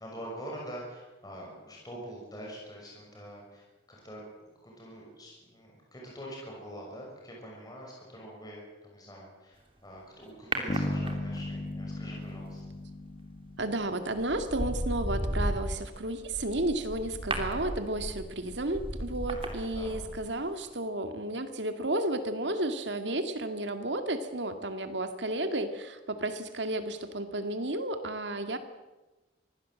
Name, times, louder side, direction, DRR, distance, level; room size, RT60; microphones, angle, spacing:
voice 1, 0.0-4.2 4.6-12.6 19.5-20.1, equal, 20° left, -2 dB, 6.1 m, -45 dB
sound 1, 10.5-11.6 13.4-13.7 14.2-20.4 20.7-20.8, right 1 dB, 30° right, 3.0 m, -35 dB
Bass guitar, 10.7-14.5, left 1 dB, 40° left, 1.3 m, -36 dB
voice 2, 13.6-28.6, right 1 dB, 75° right, 7 dB, 2.2 m, -32 dB
24.0 x 16.5 x 7.7 m, 1.1 s
head